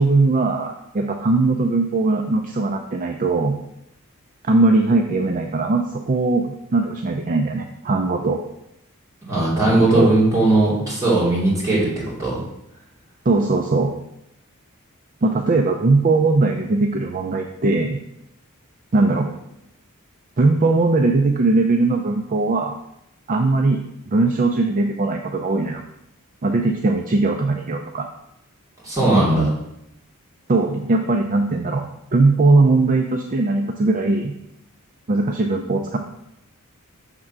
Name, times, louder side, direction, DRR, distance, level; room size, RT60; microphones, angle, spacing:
voice 1, 0.0-3.6 4.5-8.4 9.7-10.1 13.3-13.9 15.2-18.0 18.9-19.3 20.4-22.8 23.3-25.8 26.4-28.1 30.5-34.3 35.1-36.0, right 3 dB, 35° right, 3 dB, 0.5 m, -19 dB
voice 2, 9.3-12.4 28.8-29.5, right 2 dB, 15° right, -8 dB, 2.8 m, -18 dB
6.4 x 3.7 x 5.9 m, 0.82 s
head